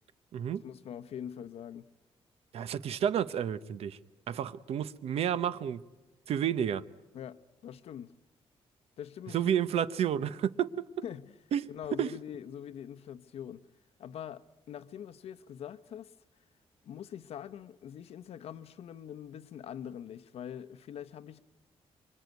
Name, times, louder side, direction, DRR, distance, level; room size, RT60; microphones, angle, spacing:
voice 1, 0.6-1.9 7.1-8.1 9.0-9.4 10.1-10.3 11.0-11.3 11.7-13.7 14.0-16.1 16.8-21.4, left 9 dB, 70° left, 0.9 m, -43 dB
voice 2, 2.5-4.0 4.3-5.8 6.3-6.8 9.3-10.9 11.5-11.7 12.0-12.1, right 9 dB, 70° right, 0.9 m, -30 dB
25.5 x 24.5 x 9.4 m
wide cardioid pair, 165°, 11 cm